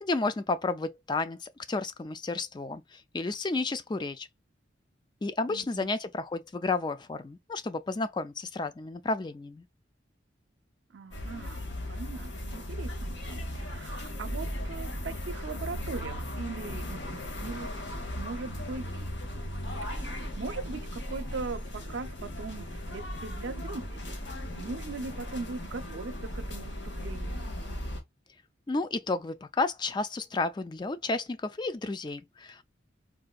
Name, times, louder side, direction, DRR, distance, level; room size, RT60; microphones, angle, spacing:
voice 1, 0.0-4.3 5.2-9.6 28.7-32.6, left 3 dB, 25° left, 0.3 m, -32 dB
voice 2, 5.5-5.9 10.9-17.8 18.2-18.9 19.9-24.1 24.5-27.5, right 4 dB, 75° right, 0.6 m, -40 dB
sound 1, 11.1-28.0, equal, 65° left, 1.2 m, -37 dB
3.8 x 2.5 x 2.3 m
head